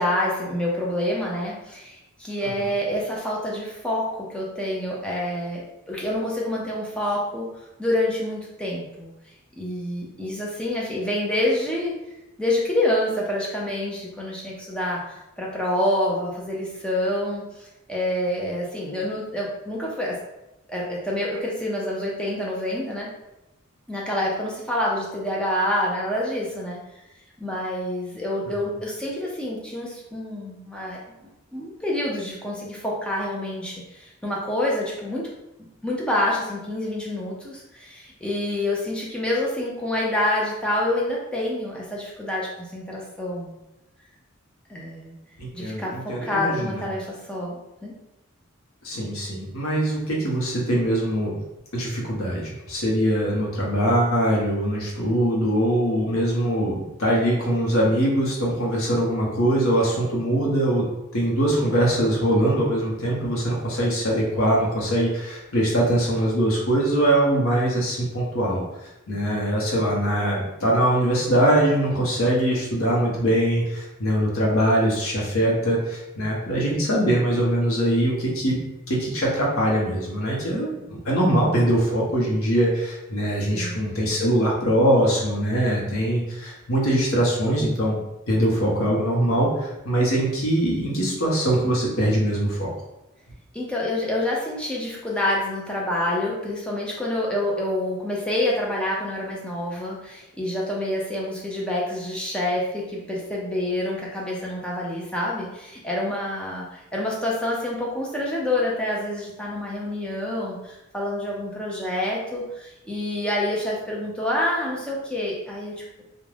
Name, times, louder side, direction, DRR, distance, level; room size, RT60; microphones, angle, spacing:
voice 1, 0.0-5.6 5.9-7.5 7.8-9.1 9.6-12.0 12.4-20.2 20.7-23.1 23.9-26.8 27.4-31.0 31.5-35.3 35.8-43.5 44.7-45.1 45.5-47.9 83.5-83.8 93.5-115.8, left 1 dB, 5° left, -4 dB, 0.5 m, -27 dB
voice 2, 45.4-46.8 48.8-51.4 51.7-60.8 61.1-68.6 69.1-88.0 88.3-92.7, right 1 dB, 85° left, -2 dB, 0.8 m, -22 dB
2.4 x 2.1 x 3.2 m, 0.94 s
head